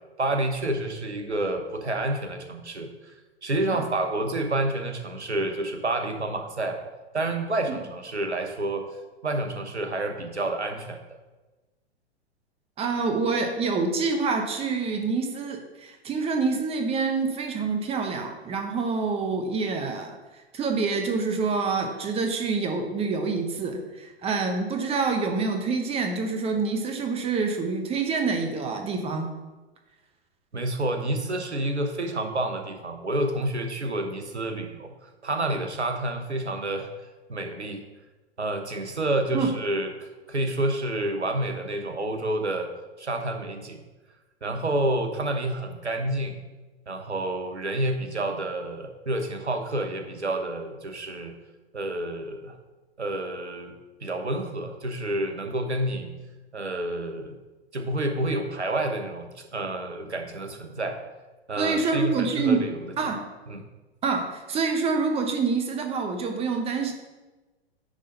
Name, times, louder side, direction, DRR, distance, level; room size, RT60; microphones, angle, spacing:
voice 1, 0.2-3.1 3.4-6.8 7.1-9.0 9.2-11.0 30.5-36.9 37.3-37.8 38.4-42.7 43.0-43.8 44.4-46.4 46.9-51.3 51.7-52.6 53.0-53.7 54.0-56.1 56.5-57.3 57.7-61.0 61.5-62.9 63.5-63.7, right 1 dB, 85° right, 5 dB, 1.1 m, -29 dB
voice 2, 12.8-20.1 20.5-29.3 39.3-39.5 61.6-62.7 63.0-63.2 64.0-66.9, right 4 dB, 20° right, 4 dB, 1.0 m, -26 dB
10.0 x 3.9 x 5.3 m, 1.2 s
figure-of-eight pair, 105°, 33 cm